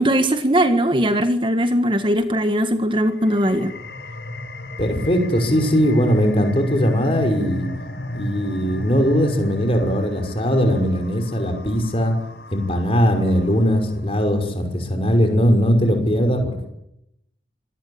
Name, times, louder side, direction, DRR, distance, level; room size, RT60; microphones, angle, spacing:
voice 1, 0.0-3.7, equal, 30° right, 8 dB, 1.7 m, -19 dB
sound 1, 3.1-14.2, left 1 dB, 70° left, 5.6 m, -34 dB
voice 2, 4.8-7.7 8.1-12.1 12.5-16.7, equal, 35° left, 6 dB, 5.7 m, -19 dB
26.5 x 18.5 x 8.8 m, 0.79 s
head